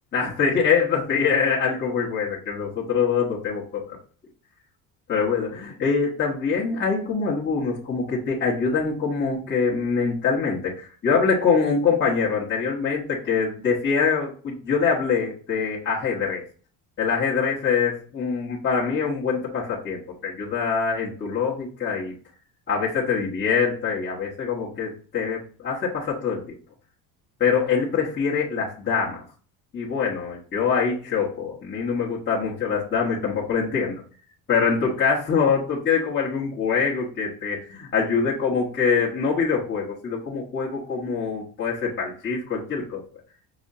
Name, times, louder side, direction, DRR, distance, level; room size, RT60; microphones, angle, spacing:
voice 1, 0.1-4.0 5.1-16.4 17.0-22.1 22.7-26.5 27.4-29.2 29.7-34.0 34.5-43.0, left 5 dB, 30° left, -7 dB, 1.2 m, -24 dB
6.1 x 2.8 x 2.6 m, 0.41 s
cardioid pair, 135°, 40 cm